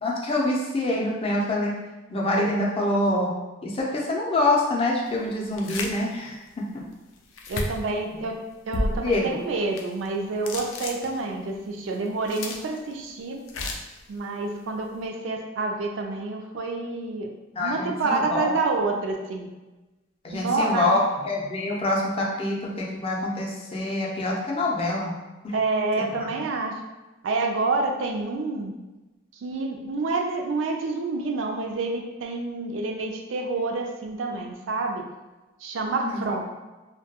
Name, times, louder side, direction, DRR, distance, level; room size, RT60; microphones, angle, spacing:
voice 1, 0.0-1.7 2.1-3.3 3.6-6.4 6.7-6.8 9.0-9.3 17.5-18.5 20.2-25.1 25.4-25.5 26.2-26.3 36.0-36.4, left 2 dB, 30° left, -3 dB, 0.4 m, -25 dB
sound 1, 5.5-6.0 6.4-6.5 7.3-7.9 8.7-9.3 9.8-10.1 10.4-11.4 12.1-12.9 13.5-14.0, left 2 dB, 90° left, 0.4 m, -31 dB
voice 2, 7.5-8.4 8.7-13.4 14.1-17.3 17.6-19.5 20.3-20.9 25.5-26.7 27.2-28.7 29.4-35.1 35.6-36.5, right 3 dB, 80° right, 2 dB, 0.4 m, -28 dB
2.2 x 2.2 x 2.8 m, 1.1 s
head